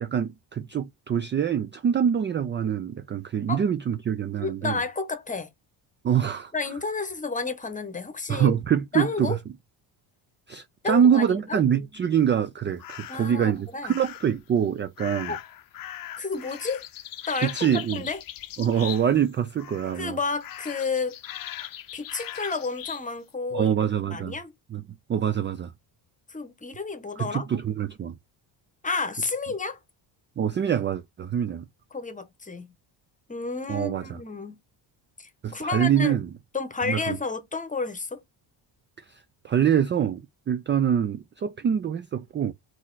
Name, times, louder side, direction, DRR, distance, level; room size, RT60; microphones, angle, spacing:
voice 1, 0.0-4.8 6.0-6.5 8.3-9.4 10.5-15.3 17.4-18.0 18.6-20.2 23.5-24.3 24.7-24.8 25.1-25.7 27.2-28.1 30.4-31.7 33.7-34.2 35.4-36.3 36.9-37.2 39.1-42.5, right 8 dB, 25° right, 0.3 m, -25 dB
voice 2, 4.4-5.5 6.5-8.6 8.9-9.4 10.8-11.6 13.1-13.9 15.3-15.4 16.2-16.8 17.3-18.2 19.9-21.2 21.9-23.7 24.1-24.5 26.3-27.5 28.8-29.8 31.9-32.7 33.3-34.6 35.2-36.2 36.5-38.2, left 4 dB, 15° left, 1.0 m, -31 dB
sound 1, 12.8-13.3 13.8-14.4 15.0-19.3 19.6-20.1 20.4-23.1, left 12 dB, 45° left, 0.6 m, -39 dB
4.1 x 3.1 x 3.9 m
cardioid pair, 115°, 48 cm